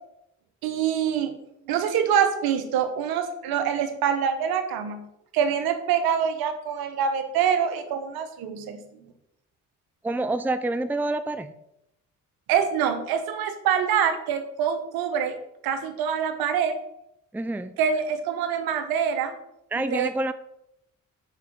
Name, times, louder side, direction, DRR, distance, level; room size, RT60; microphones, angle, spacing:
voice 1, 0.6-1.3 1.7-5.1 5.3-8.8 12.5-15.3 15.6-16.7 17.8-19.4 19.9-20.1, right 8 dB, 90° right, 8 dB, 1.0 m, -25 dB
voice 2, 10.0-11.5 17.3-17.7 19.7-20.3, right 2 dB, 5° right, 11 dB, 0.6 m, -27 dB
6.8 x 4.8 x 6.1 m, 0.80 s
supercardioid pair, 55°, 36 cm